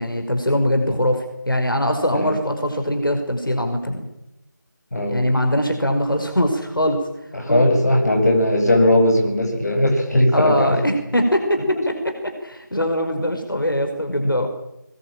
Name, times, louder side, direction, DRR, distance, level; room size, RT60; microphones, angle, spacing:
voice 1, 0.0-4.0 5.1-7.0 7.4-7.7 10.3-14.5, equal, 90° left, 5 dB, 5.2 m, -22 dB
voice 2, 4.9-5.2 7.3-10.8 14.2-14.3, left 1 dB, 55° left, 2 dB, 7.6 m, -18 dB
21.5 x 21.5 x 9.0 m, 0.88 s
figure-of-eight pair, 170°, 11 cm